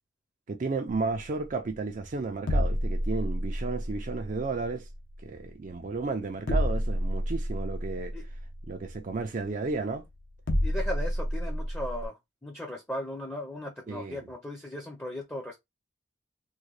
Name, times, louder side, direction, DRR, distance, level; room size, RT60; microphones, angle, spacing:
voice 1, 0.5-4.9 5.2-8.1 8.7-10.0 13.9-14.2, right 3 dB, 40° right, 0.4 m, -33 dB
sound 1, 1.2-12.1, equal, 70° left, 0.8 m, -31 dB
voice 2, 10.6-12.2 12.4-15.6, left 1 dB, 10° left, 0.5 m, -37 dB
3.6 x 2.2 x 3.1 m
head